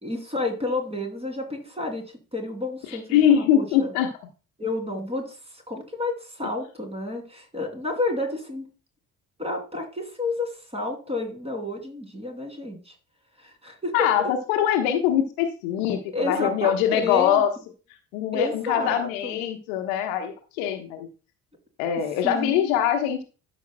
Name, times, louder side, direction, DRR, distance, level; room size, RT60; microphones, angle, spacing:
voice 1, 0.0-3.9 4.6-8.7 9.4-12.9 13.4-14.1 16.1-16.7 17.0-17.4 18.3-19.4 22.2-22.9, left 2 dB, 15° right, 3 dB, 2.8 m, -30 dB
voice 2, 3.1-4.1 13.9-17.5 18.1-21.1 21.8-23.2, left 9 dB, 65° left, 6 dB, 1.1 m, -23 dB
13.0 x 5.7 x 2.2 m, 0.34 s
figure-of-eight pair, 45°, 43 cm